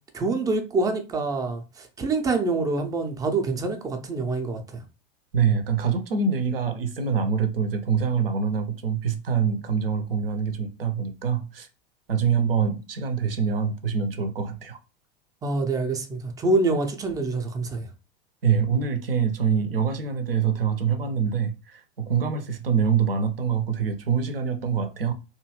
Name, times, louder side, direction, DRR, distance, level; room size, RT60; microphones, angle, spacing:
voice 1, 0.1-4.8 15.4-17.9, right 3 dB, 10° right, 0.4 m, -26 dB
voice 2, 5.3-11.7 12.1-14.8 18.4-25.1, right 6 dB, 70° right, 0.6 m, -25 dB
2.7 x 2.4 x 2.9 m
figure-of-eight pair, 85°, 29 cm